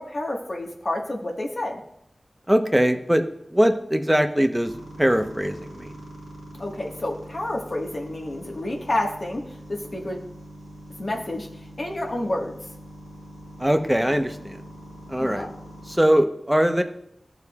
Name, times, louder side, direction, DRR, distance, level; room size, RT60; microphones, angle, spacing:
voice 1, 0.0-1.8 6.6-9.4 9.7-10.2 11.0-11.5 11.8-12.5 15.2-15.5, left 1 dB, 55° left, 0 dB, 1.6 m, -29 dB
voice 2, 2.5-3.2 3.5-4.7 5.0-5.9 13.6-14.6 15.1-15.5 15.9-16.8, equal, 10° right, 6 dB, 1.0 m, -21 dB
sound 1, 4.6-16.0, equal, 70° right, 1.7 m, -43 dB
14.0 x 7.0 x 2.4 m, 0.74 s
cardioid pair, 45°, 0 cm